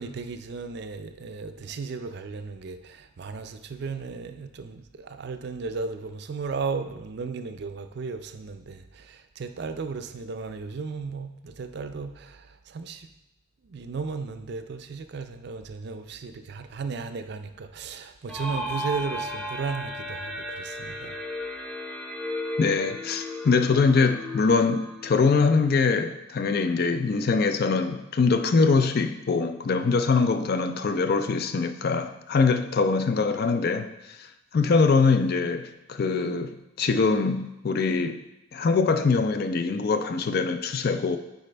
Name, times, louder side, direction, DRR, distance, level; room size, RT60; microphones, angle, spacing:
voice 1, 0.0-13.1 13.6-21.2, right 4 dB, 55° right, 0.4 m, -35 dB
sound 1, 18.3-25.9, left 1 dB, 5° left, 0.6 m, -35 dB
voice 2, 22.6-34.3 34.5-38.2 38.5-41.2, left 4 dB, 50° left, 0.4 m, -23 dB
9.1 x 4.2 x 3.3 m
head